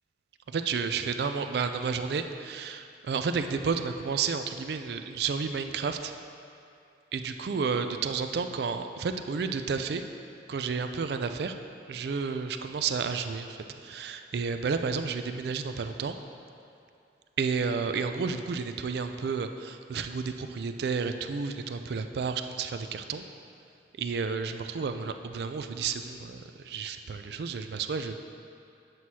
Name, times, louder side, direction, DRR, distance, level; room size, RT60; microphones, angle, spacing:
voice 1, 0.5-6.1 7.1-10.0 10.5-11.5 11.9-16.2 17.4-23.2 24.0-28.1, right 5 dB, 60° right, 8 dB, 0.3 m, -31 dB
7.8 x 6.1 x 2.8 m, 2.5 s
head